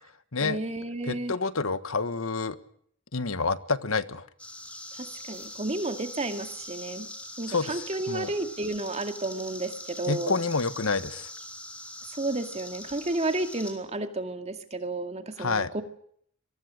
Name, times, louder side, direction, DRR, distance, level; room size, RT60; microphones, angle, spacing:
voice 1, 0.4-1.4 4.9-7.1 7.4-10.4 12.1-15.8, right 2 dB, 30° right, 7 dB, 2.2 m, -32 dB
voice 2, 1.0-2.6 3.1-4.3 7.5-8.3 10.1-11.3 15.4-15.7, left 4 dB, 80° left, 13 dB, 1.5 m, -28 dB
sound 1, 4.4-13.7, left 1 dB, 5° left, 4.5 m, -42 dB
28.0 x 23.5 x 6.5 m, 0.66 s
head